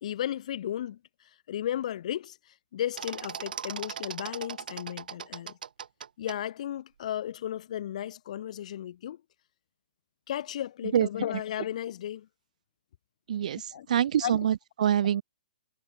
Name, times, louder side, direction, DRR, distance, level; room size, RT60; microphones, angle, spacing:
voice 1, 0.0-1.0 1.5-2.4 2.7-5.6 6.2-9.2 10.3-12.3 13.7-13.9 14.2-14.4, left 11 dB, 45° left, 0.9 m, -34 dB
sound 1, 3.0-6.4, right 7 dB, 70° right, 0.8 m, -39 dB
voice 2, 13.3-15.2, right 10 dB, 55° right, 0.3 m, -25 dB
hypercardioid pair, 165°, 5 cm